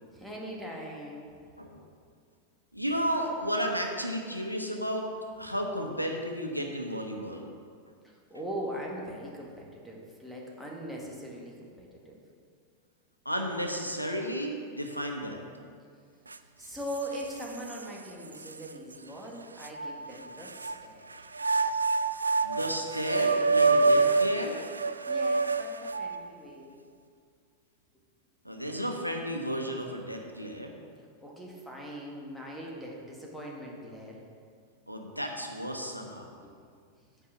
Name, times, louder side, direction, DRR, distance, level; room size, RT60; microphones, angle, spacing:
voice 1, 0.1-1.4 8.0-12.2 16.3-21.3 25.1-26.7 31.2-34.2 36.4-36.5, equal, ahead, -3 dB, 1.8 m, -41 dB
voice 2, 2.7-5.1 5.4-7.5 13.2-15.4 22.4-24.6 28.4-30.7 34.9-36.3, equal, 90° left, 3 dB, 1.0 m, -33 dB
sound 1, 16.3-16.4 16.9-17.8 18.4-18.5 19.6-20.8 21.3-26.3, right 4 dB, 80° right, 0.3 m, -26 dB
9.3 x 4.6 x 7.1 m, 2.2 s
figure-of-eight pair, 90°, 0 cm